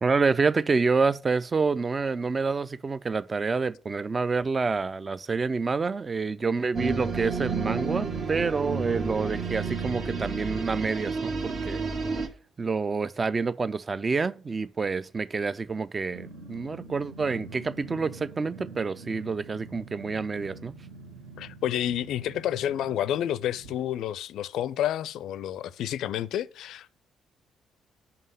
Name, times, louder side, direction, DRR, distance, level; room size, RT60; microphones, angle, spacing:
voice 1, 0.0-11.9 12.6-20.7, right 4 dB, 30° right, 0.5 m, -28 dB
sound 1, 6.7-12.3, right 4 dB, 45° right, 1.0 m, -31 dB
Growling, 16.1-23.8, right 3 dB, 75° right, 1.3 m, -46 dB
voice 2, 21.4-26.9, left 11 dB, 60° left, 0.4 m, -30 dB
5.8 x 5.5 x 6.7 m
figure-of-eight pair, 45°, 0 cm